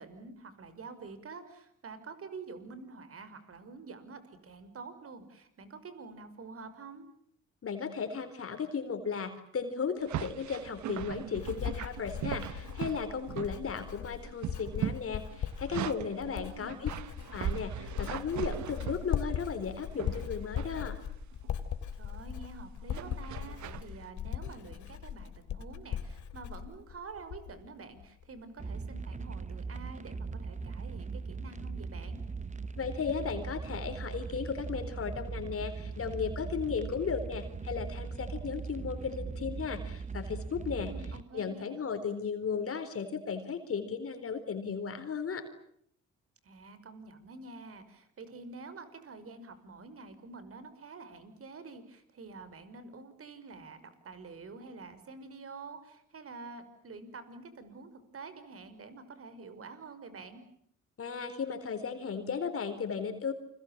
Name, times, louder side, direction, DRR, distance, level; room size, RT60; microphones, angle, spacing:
voice 1, 0.0-7.1 16.3-16.8 22.0-32.2 40.8-41.8 46.4-60.4, right 4 dB, 50° right, 11 dB, 5.8 m, -47 dB
voice 2, 7.6-16.9 17.3-21.0 32.7-40.9 41.3-45.4 61.0-63.3, left 6 dB, 45° left, 8 dB, 4.2 m, -35 dB
sound 1, 10.0-13.9 14.2-16.2 16.7-19.5 20.0-20.7 21.2-21.5 22.9-23.9, right 10 dB, 70° right, 1.2 m, -39 dB
Writing, 10.6-27.7 28.0-28.4, left 9 dB, 75° left, 3.0 m, -39 dB
sound 2, 28.6-41.2, right 4 dB, 25° right, 1.2 m, -39 dB
29.0 x 25.5 x 7.4 m, 0.68 s
cardioid pair, 90°, 30 cm